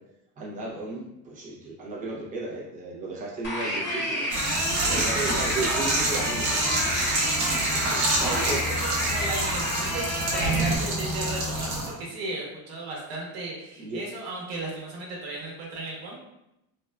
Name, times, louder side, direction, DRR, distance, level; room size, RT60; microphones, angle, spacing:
voice 1, 0.4-4.3 4.9-6.6 8.2-8.6 13.8-14.0, right 2 dB, 20° right, -6 dB, 0.5 m, -34 dB
sound 1, 3.4-10.8, equal, 25° left, 0.7 m, -30 dB
sound 2, 4.3-11.9, right 2 dB, 45° right, 0.9 m, -27 dB
voice 2, 4.8-5.5 7.4-10.1 10.3-16.2, right 2 dB, 65° right, -3 dB, 1.0 m, -35 dB
3.4 x 2.2 x 2.2 m, 0.87 s
cardioid pair, 180°, 42 cm